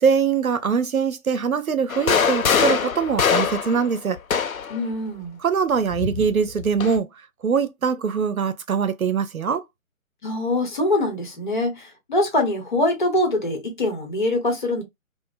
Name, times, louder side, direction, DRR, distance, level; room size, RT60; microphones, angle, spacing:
voice 1, 0.0-4.2 5.4-7.1 7.4-9.6, right 6 dB, 85° right, 0.6 m, -22 dB
sound 1, 1.9-4.8 5.9-7.0, left 6 dB, 80° left, 0.6 m, -23 dB
voice 2, 4.7-5.4 10.2-14.8, left 1 dB, 35° left, 0.9 m, -23 dB
2.9 x 2.1 x 2.4 m
figure-of-eight pair, 150°, 41 cm